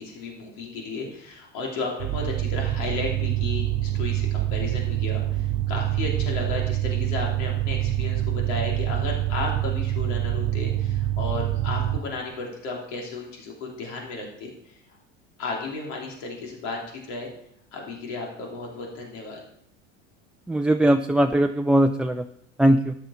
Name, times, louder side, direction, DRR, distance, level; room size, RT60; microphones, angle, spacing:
voice 1, 0.0-14.5 15.4-16.8 17.1-17.3 17.7-19.4, left 3 dB, 75° left, -1 dB, 3.2 m, -34 dB
sound 1, 2.0-12.0, right 13 dB, 55° right, 1.0 m, -26 dB
voice 2, 20.5-22.3 22.6-23.0, right 1 dB, 5° right, 5 dB, 0.4 m, -20 dB
13.0 x 10.5 x 4.3 m, 0.72 s
hypercardioid pair, 95°, 36 cm